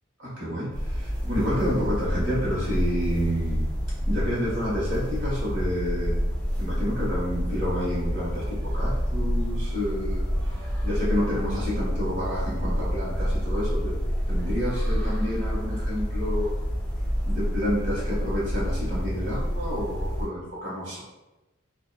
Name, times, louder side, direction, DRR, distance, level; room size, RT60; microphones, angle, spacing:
voice 1, 0.2-3.7 4.1-6.1 6.6-10.2 10.8-14.0 14.3-16.5 17.2-21.0, equal, 60° right, -8 dB, 1.0 m, -29 dB
sound 1, 0.7-20.3, equal, 5° left, 0.5 m, -28 dB
2.7 x 2.2 x 2.2 m, 1.1 s
head